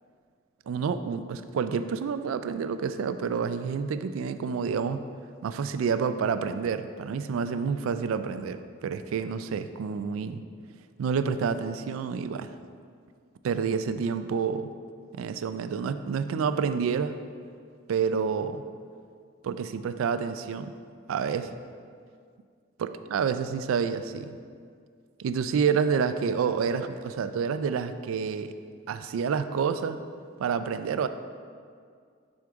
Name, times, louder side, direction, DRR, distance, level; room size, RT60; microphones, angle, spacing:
voice 1, 0.7-5.0 5.4-10.4 11.0-12.5 13.4-14.7 15.1-17.2 17.9-18.6 19.4-20.7 21.1-21.5 22.8-24.4 25.2-28.5 28.9-30.0 30.4-31.1, right 6 dB, 90° right, 11 dB, 0.3 m, -28 dB
6.3 x 4.6 x 3.5 m, 2.1 s
head